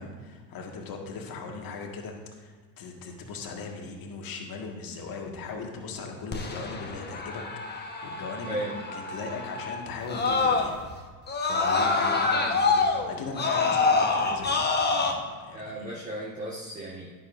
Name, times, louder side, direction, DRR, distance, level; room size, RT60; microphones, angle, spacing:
voice 1, 0.0-8.7 8.9-11.1 11.4-16.0, left 4 dB, 45° left, 1 dB, 2.0 m, -39 dB
Screaming, 6.3-10.9 11.3-15.1, left 4 dB, 20° left, 1.3 m, -26 dB
voice 2, 15.5-17.1, right 1 dB, 15° right, -4 dB, 1.6 m, -35 dB
11.0 x 10.0 x 2.7 m, 1.5 s
hypercardioid pair, 85°, 49 cm